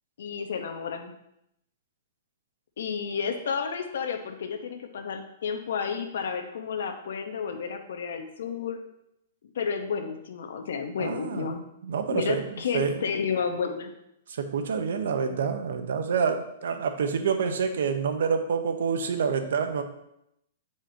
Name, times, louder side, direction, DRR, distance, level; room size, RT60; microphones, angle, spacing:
voice 1, 0.2-1.1 2.8-8.8 9.5-11.6 12.1-13.9, left 6 dB, 75° left, 6 dB, 1.0 m, -31 dB
voice 2, 11.0-11.5 11.8-13.1 14.3-19.8, right 6 dB, 75° right, 7 dB, 0.9 m, -27 dB
9.0 x 4.8 x 2.8 m, 0.79 s
hypercardioid pair, 155°, 0 cm